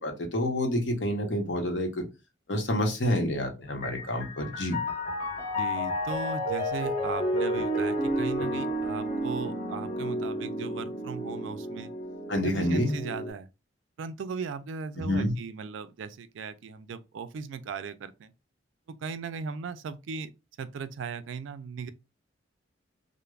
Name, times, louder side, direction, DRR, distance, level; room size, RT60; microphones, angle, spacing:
voice 1, 0.0-2.1 2.5-4.8 12.3-12.9 15.0-15.3, left 1 dB, 65° left, 0.8 m, -28 dB
Piano, 3.7-13.3, equal, 35° left, 1.1 m, -31 dB
voice 2, 5.6-11.9 12.4-13.5 14.0-18.3 18.9-20.3 20.6-21.9, right 5 dB, 80° right, 0.4 m, -37 dB
3.2 x 2.0 x 2.3 m
head